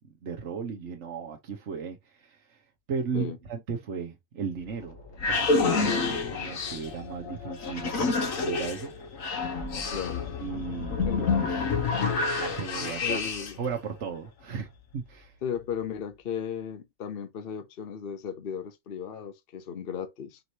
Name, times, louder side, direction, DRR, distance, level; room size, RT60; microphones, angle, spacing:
voice 1, 0.2-2.6 2.9-5.0 5.3-8.9 10.4-11.2 12.4-13.2 13.6-15.3, right 6 dB, 65° right, 1.2 m, -36 dB
sound 1, 4.6-13.7, left 4 dB, 85° left, 1.4 m, -29 dB
voice 2, 9.9-10.3 11.0-11.3 13.0-13.6 15.4-20.4, left 7 dB, 50° left, 0.8 m, -35 dB
5.2 x 3.1 x 2.7 m
omnidirectional pair, 1.4 m